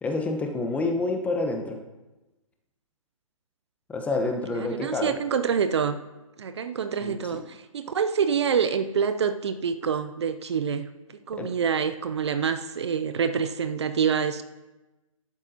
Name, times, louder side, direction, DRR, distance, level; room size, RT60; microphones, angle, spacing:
voice 1, 0.0-1.8 3.9-5.1 7.0-7.2 11.3-11.5, left 3 dB, 10° left, 4 dB, 1.0 m, -28 dB
voice 2, 4.5-6.0 6.4-10.9 11.3-14.4, right 6 dB, 50° right, 10 dB, 0.7 m, -26 dB
22.0 x 12.0 x 2.9 m, 1.1 s
figure-of-eight pair, 130°, 18 cm